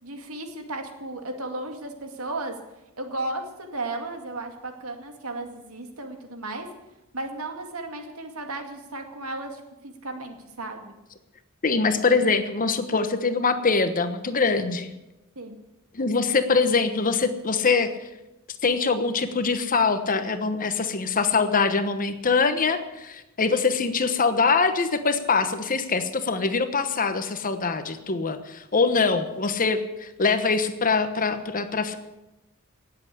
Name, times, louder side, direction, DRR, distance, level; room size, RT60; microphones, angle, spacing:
voice 1, 0.0-2.6 3.0-6.7 7.1-10.9 15.4-15.6, right 2 dB, 75° right, 5 dB, 2.2 m, -34 dB
voice 2, 11.6-14.9 15.9-18.1 18.6-32.0, left 4 dB, 40° left, 10 dB, 1.1 m, -23 dB
18.5 x 8.0 x 8.5 m, 1.0 s
head